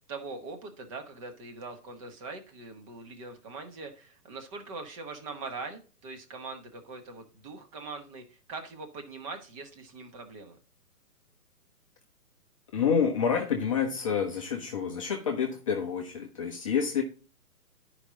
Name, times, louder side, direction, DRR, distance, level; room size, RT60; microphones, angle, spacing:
voice 1, 0.1-10.6, right 3 dB, 20° right, 5 dB, 1.5 m, -42 dB
voice 2, 12.7-17.0, left 7 dB, 20° left, 2 dB, 0.8 m, -28 dB
11.5 x 5.1 x 3.8 m, 0.35 s
figure-of-eight pair, 130°, 45 cm